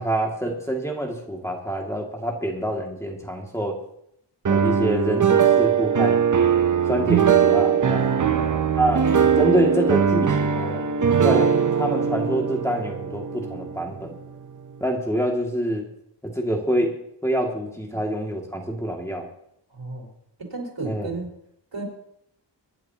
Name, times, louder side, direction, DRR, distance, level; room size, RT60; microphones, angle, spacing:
voice 1, 0.0-3.8 4.5-6.2 6.9-8.1 8.8-9.1 9.4-10.8 11.2-14.2 14.8-15.9 16.2-17.0 17.2-19.3 20.8-21.1, right 1 dB, 5° left, -1 dB, 2.2 m, -26 dB
sound 1, 4.5-14.4, right 7 dB, 45° right, 0.7 m, -20 dB
voice 2, 7.9-8.6 19.7-20.1 20.4-21.3 21.7-21.8, right 3 dB, 80° right, -2 dB, 4.4 m, -33 dB
25.0 x 11.0 x 2.9 m, 0.75 s
wide cardioid pair, 90°, 44 cm